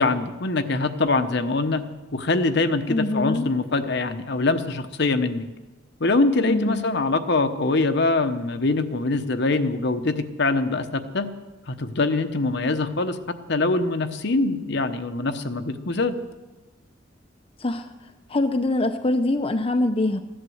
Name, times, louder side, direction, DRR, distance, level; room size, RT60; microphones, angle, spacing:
voice 1, 0.0-1.8 2.1-5.5 6.0-11.3 11.7-13.2 13.5-16.2, left 3 dB, 60° left, 10 dB, 1.0 m, -23 dB
voice 2, 2.9-3.5 6.4-6.8 17.6-17.9 18.3-20.2, left 2 dB, 30° left, 7 dB, 0.7 m, -23 dB
15.5 x 11.0 x 7.9 m, 1.2 s
head